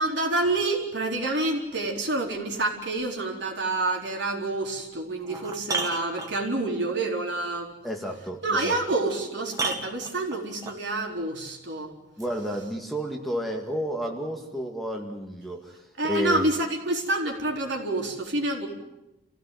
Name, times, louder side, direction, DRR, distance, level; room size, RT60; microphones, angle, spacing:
voice 1, 0.0-7.7 8.4-11.9 16.0-18.7, right 2 dB, 70° right, 1 dB, 4.2 m, -28 dB
sound 1, 4.6-4.7 5.2-6.7 8.7-8.8 9.5-10.8 12.2-12.3, right 3 dB, 20° right, 1.7 m, -32 dB
voice 2, 7.8-8.7 12.2-16.5, equal, ahead, 1 dB, 2.2 m, -31 dB
29.0 x 16.5 x 9.5 m, 0.98 s
head